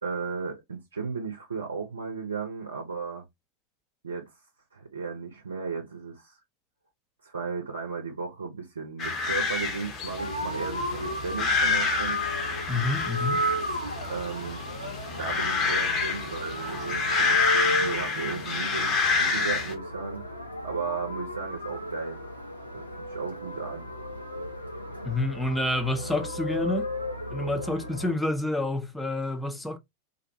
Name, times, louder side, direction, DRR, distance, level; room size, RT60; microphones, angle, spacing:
voice 1, 0.0-3.2 4.0-4.3 4.7-6.4 7.2-12.2 14.1-14.6 15.2-20.3 20.6-22.2 22.7-23.9, right 5 dB, 75° right, 0.6 m, -35 dB
sound 1, 9.0-19.7, left 4 dB, 35° left, 0.8 m, -28 dB
sound 2, 10.2-28.1, equal, 85° left, 0.6 m, -34 dB
voice 2, 12.7-13.4 25.0-26.9 27.3-29.8, left 2 dB, 5° left, 0.5 m, -28 dB
2.5 x 2.1 x 2.6 m
figure-of-eight pair, 90°, 0 cm